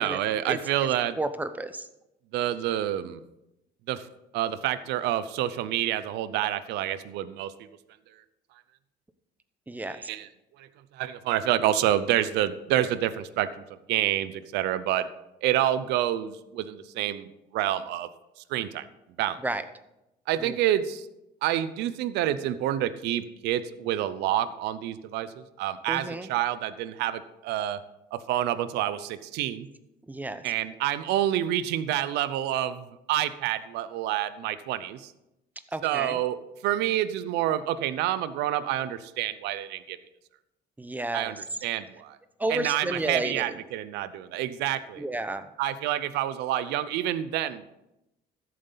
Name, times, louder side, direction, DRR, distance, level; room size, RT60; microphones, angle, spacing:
voice 1, 0.0-1.2 2.3-3.2 3.9-4.1 4.3-7.5 10.1-10.3 10.6-10.7 10.9-13.5 13.9-15.1 15.4-18.1 18.5-18.9 19.2-19.4 20.3-21.1 21.4-27.8 28.1-29.7 30.4-35.1 35.8-40.0 41.1-42.2 42.5-45.1 45.6-47.8, right 12 dB, 90° right, 14 dB, 0.7 m, -28 dB
voice 2, 1.2-1.9 9.7-10.1 19.4-19.6 20.4-20.6 25.9-26.3 30.1-30.4 35.7-36.2 40.8-41.3 42.4-43.6 45.0-45.5, right 2 dB, 10° right, 11 dB, 0.8 m, -32 dB
13.5 x 7.8 x 4.0 m, 0.90 s
cardioid pair, 110°, 17 cm